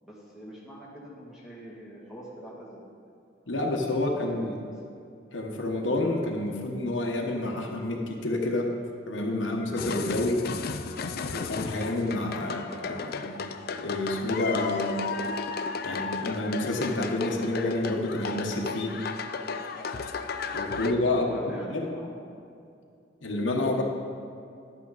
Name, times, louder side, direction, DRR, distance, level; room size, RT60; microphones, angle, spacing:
voice 1, 0.0-2.9 3.4-4.6 12.4-12.7 21.1-22.2, equal, ahead, -7 dB, 2.2 m, -44 dB
voice 2, 3.5-4.6 5.3-8.7 9.1-10.4 11.3-13.4 13.7-15.0 15.8-18.9 20.5-21.4 21.7-21.9 23.2-23.8, left 2 dB, 85° left, 1 dB, 1.2 m, -29 dB
sound 1, 9.8-20.9, left 4 dB, 55° left, 0.5 m, -34 dB
11.0 x 8.7 x 4.0 m, 2.5 s
head